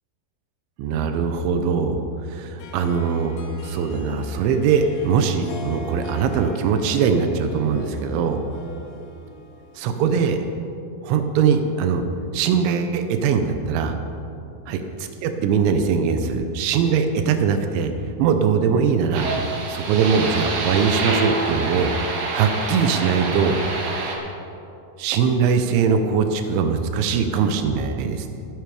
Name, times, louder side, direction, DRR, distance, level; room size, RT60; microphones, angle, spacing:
voice 1, 0.8-3.3 3.6-8.4 9.8-10.4 11.0-12.0 12.3-14.0 14.7-17.9 18.2-19.3 19.7-22.1 22.3-23.6 25.0-28.3, right 6 dB, 85° right, 7 dB, 3.1 m, -21 dB
Harp, 2.6-10.3, left 2 dB, 85° left, 1.8 m, -40 dB
sound 1, 19.1-24.2, right 3 dB, 65° right, 3.5 m, -26 dB
19.5 x 9.4 x 4.9 m, 2.7 s
omnidirectional pair, 5.2 m